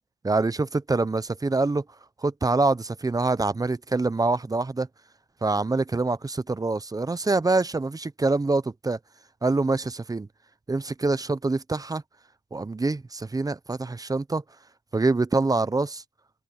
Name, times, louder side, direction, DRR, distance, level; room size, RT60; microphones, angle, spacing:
voice 1, 0.2-1.8 2.2-4.9 5.4-9.0 9.4-10.3 10.7-12.0 12.5-14.4 14.9-16.0, right 3 dB, 20° right, 0.9 m, -25 dB
cardioid pair, 90°, 20 cm